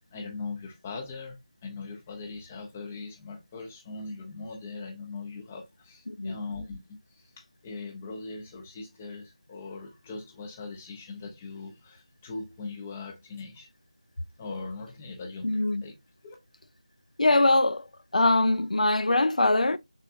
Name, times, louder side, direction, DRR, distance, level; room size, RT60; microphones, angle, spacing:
voice 1, 0.1-1.4 1.6-13.7 14.4-15.9 16.2-16.4, left 3 dB, 10° left, 0.6 m, -40 dB
voice 2, 6.1-6.4 15.4-15.9 17.2-17.9 18.1-19.8, left 2 dB, 80° left, 0.5 m, -23 dB
5.7 x 3.9 x 2.3 m
figure-of-eight pair, 175°, 4 cm